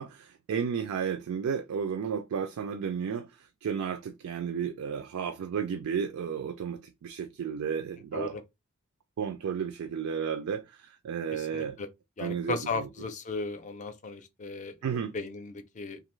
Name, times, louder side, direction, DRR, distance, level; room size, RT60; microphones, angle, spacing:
voice 1, 0.0-8.4 9.2-11.8 12.2-12.9 14.8-15.1, right 7 dB, 80° right, 0.3 m, -33 dB
voice 2, 11.3-11.9 12.2-14.7 15.1-16.0, left 3 dB, 35° left, 0.5 m, -36 dB
2.5 x 2.3 x 3.0 m
head